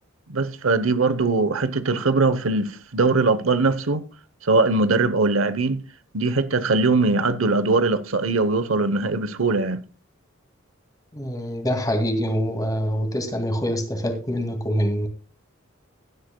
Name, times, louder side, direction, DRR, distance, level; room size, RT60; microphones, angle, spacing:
voice 1, 0.3-4.0 4.4-5.9 6.1-9.8, right 3 dB, 75° right, 0.9 m, -21 dB
voice 2, 11.1-15.1, equal, 20° left, 2.3 m, -25 dB
16.5 x 11.5 x 2.3 m
head